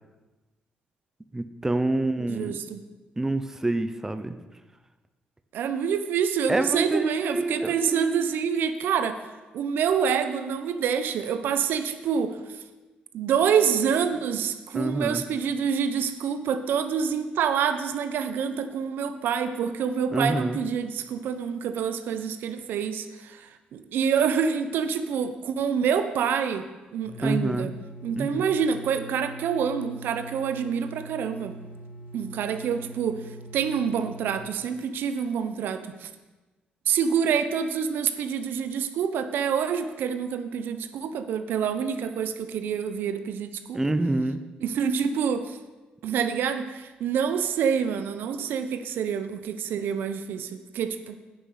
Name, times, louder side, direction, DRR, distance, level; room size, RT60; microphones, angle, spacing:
voice 1, 1.3-2.6 3.2-4.4 6.5-8.3 14.7-15.2 20.1-20.6 27.2-27.7 28.2-28.5 43.7-44.4, right 2 dB, 15° right, 10 dB, 0.7 m, -27 dB
voice 2, 2.2-2.8 5.5-9.2 9.5-12.4 13.1-26.7 26.9-27.7 28.0-31.6 32.1-33.2 33.5-36.1 36.9-43.8 44.6-45.6 46.0-51.2, right 7 dB, 80° right, 10 dB, 0.8 m, -27 dB
sound 1, 27.0-34.4, right 2 dB, 50° left, 3.0 m, -44 dB
9.6 x 6.6 x 8.2 m, 1.2 s
cardioid pair, 100°, 3 cm